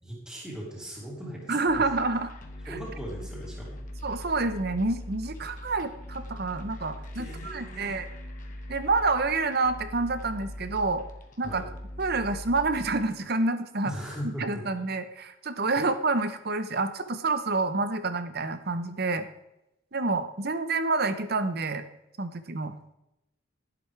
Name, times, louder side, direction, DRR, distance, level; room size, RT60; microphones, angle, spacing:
voice 1, 0.0-1.9 2.7-3.8 7.2-8.0 11.4-11.7 13.8-14.5, equal, 5° right, -5 dB, 3.0 m, -39 dB
voice 2, 1.5-2.3 2.6-2.8 4.0-8.1 8.7-11.0 11.4-11.6 12.0-13.9 14.2-19.3 19.9-21.8 22.2-22.8, right 3 dB, 50° right, 10 dB, 0.9 m, -28 dB
sound 1, 1.7-13.1, equal, 40° left, 1.3 m, -41 dB
11.5 x 11.0 x 3.4 m, 0.89 s
head